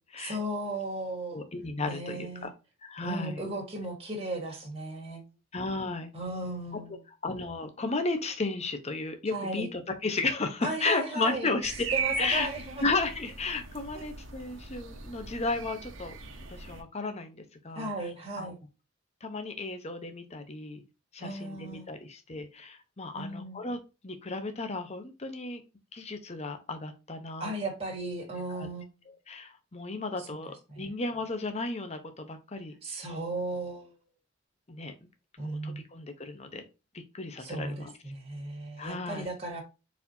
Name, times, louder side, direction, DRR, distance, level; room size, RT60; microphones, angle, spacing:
voice 1, 0.2-1.4 1.8-2.5 3.0-5.2 6.1-7.0 9.3-9.7 10.6-11.6 11.9-12.9 13.9-14.1 17.7-18.6 21.2-21.9 23.1-23.6 27.4-28.9 30.2-30.3 30.7-30.9 32.8-33.9 35.4-35.8 37.4-39.6, right 2 dB, 30° right, 1.7 m, -36 dB
voice 2, 1.3-2.5 2.8-3.4 5.5-6.1 7.2-11.7 12.2-12.5 12.8-16.2 16.5-17.9 18.4-18.5 19.2-20.8 21.1-23.8 24.0-25.6 25.9-27.5 28.5-28.7 29.3-33.0 34.7-34.9 35.4-36.6 37.1-37.9 38.8-39.3, left 3 dB, 35° left, 0.8 m, -34 dB
sound 1, 11.6-16.8, right 5 dB, 85° right, 1.1 m, -38 dB
4.2 x 4.2 x 2.7 m
head